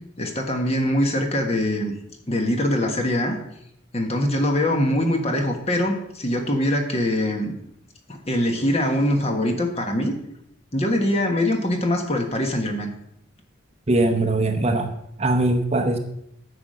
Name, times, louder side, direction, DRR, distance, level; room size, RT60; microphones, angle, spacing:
voice 1, 0.2-1.9 2.3-3.4 3.9-7.6 8.1-10.2 10.7-12.9, left 1 dB, 30° left, 3 dB, 1.5 m, -23 dB
voice 2, 13.9-14.9 15.2-16.0, right 2 dB, 30° right, 5 dB, 0.8 m, -21 dB
9.9 x 5.2 x 7.6 m, 0.77 s
head